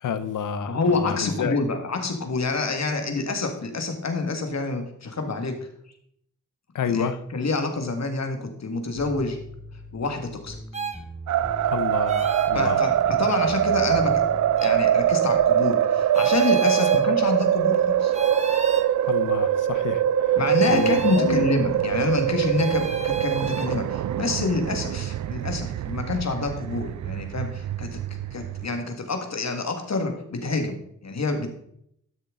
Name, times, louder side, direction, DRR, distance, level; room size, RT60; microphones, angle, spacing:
voice 1, 0.0-1.6 6.7-7.2 11.7-12.9 19.0-20.4 20.7-21.4, left 7 dB, 75° left, 12 dB, 0.8 m, -29 dB
voice 2, 0.7-5.5 6.9-9.4 9.9-10.6 12.5-14.2 14.6-18.1 20.4-28.0 28.3-31.5, left 3 dB, 55° left, 6 dB, 1.9 m, -27 dB
sound 1, 9.0-15.4, equal, 5° right, 2.6 m, -40 dB
sound 2, 10.7-11.0 12.1-12.5 14.6-14.7 16.1-17.1 18.1-18.9 20.6-21.3 22.6-23.7, right 3 dB, 20° right, 1.2 m, -32 dB
sound 3, 11.3-28.7, right 10 dB, 65° right, 0.5 m, -23 dB
12.0 x 6.7 x 3.8 m, 0.71 s
cardioid pair, 60°, 31 cm